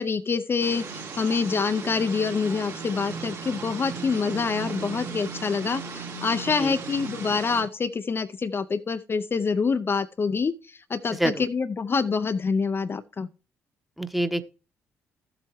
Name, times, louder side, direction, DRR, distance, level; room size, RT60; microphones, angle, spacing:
voice 1, 0.0-10.5 10.9-13.3, left 5 dB, 40° left, 0.6 m, -26 dB
sound 1, 0.6-7.6, right 5 dB, 60° right, 3.4 m, -37 dB
voice 2, 11.1-11.4 14.0-14.4, right 1 dB, ahead, 1.1 m, -26 dB
13.5 x 7.9 x 3.1 m
hypercardioid pair, 45°, 6 cm